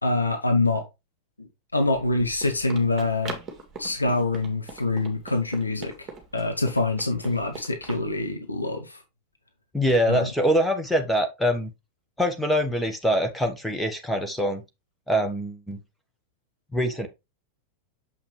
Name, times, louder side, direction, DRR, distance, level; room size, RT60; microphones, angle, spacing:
voice 1, 0.0-0.8 1.4-3.4 3.8-6.1 6.3-9.0 10.1-10.3, left 2 dB, 80° left, 1.2 m, -25 dB
Run, 1.9-8.1, right 4 dB, 20° right, 2.7 m, -42 dB
voice 2, 9.7-11.7 12.2-14.6 15.1-15.8 16.7-17.1, equal, ahead, 1.4 m, -24 dB
7.1 x 5.5 x 3.3 m
figure-of-eight pair, 90°, 0 cm